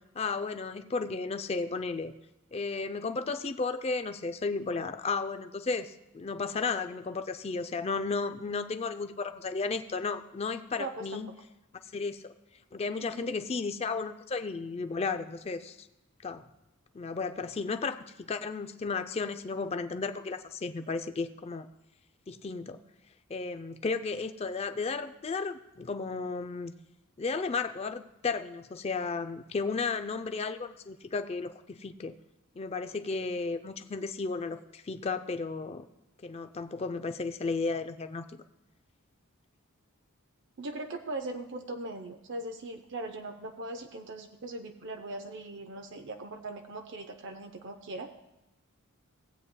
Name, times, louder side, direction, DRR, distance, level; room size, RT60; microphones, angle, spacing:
voice 1, 0.1-2.1 2.5-11.3 11.9-12.3 12.7-15.9 16.2-16.4 16.9-21.7 22.3-22.8 23.3-26.7 27.2-32.1 32.6-35.8 36.2-38.4, left 4 dB, 30° left, 9 dB, 0.4 m, -34 dB
voice 2, 10.8-11.2 13.0-13.3 40.6-48.1, right 2 dB, 55° right, 5 dB, 0.6 m, -40 dB
16.5 x 8.6 x 2.2 m, 0.95 s
head